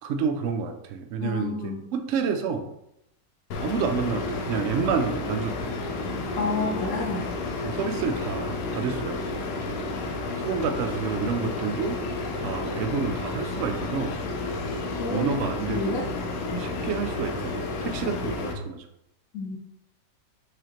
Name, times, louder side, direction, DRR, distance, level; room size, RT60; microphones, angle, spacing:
voice 1, 0.0-2.7 3.6-5.7 7.6-9.3 9.7-9.9 10.4-12.0 12.3-14.2 15.1-16.0 16.6-18.9, right 6 dB, 85° right, 6 dB, 0.6 m, -29 dB
voice 2, 1.2-1.8 6.4-7.3 15.0-15.2 15.7-16.0 16.5-16.6 19.3-19.6, left 3 dB, 60° left, -2 dB, 1.1 m, -30 dB
sound 1, 3.5-18.5, left 3 dB, 90° left, 1.3 m, -31 dB
5.0 x 3.7 x 2.9 m, 0.80 s
omnidirectional pair, 1.8 m